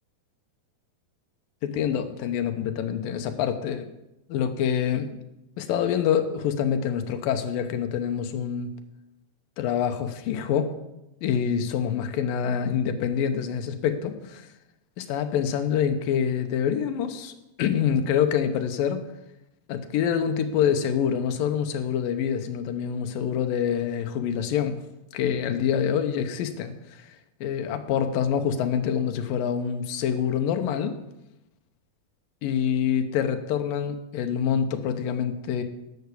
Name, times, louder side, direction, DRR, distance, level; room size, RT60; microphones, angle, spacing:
voice 1, 1.6-3.9 4.3-5.2 5.6-8.7 9.6-10.7 11.2-14.5 15.0-19.1 19.7-24.8 25.1-31.0 32.4-35.6, left 8 dB, 80° left, 8 dB, 2.7 m, -26 dB
12.0 x 8.0 x 8.4 m, 0.93 s
omnidirectional pair, 4.0 m